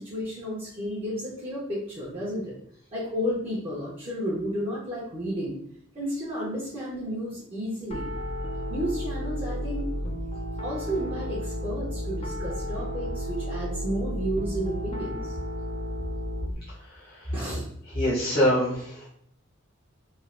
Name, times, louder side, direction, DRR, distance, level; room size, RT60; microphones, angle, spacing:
voice 1, 0.0-2.5 2.9-5.6 5.9-8.1 8.7-9.9 10.6-15.4 17.3-17.6, equal, 30° right, -7 dB, 0.7 m, -32 dB
Piano, 7.9-16.5, equal, 30° left, 0.4 m, -32 dB
voice 2, 16.9-17.3 17.9-19.1, equal, 45° left, -8 dB, 0.8 m, -25 dB
3.1 x 2.4 x 2.5 m, 0.69 s
head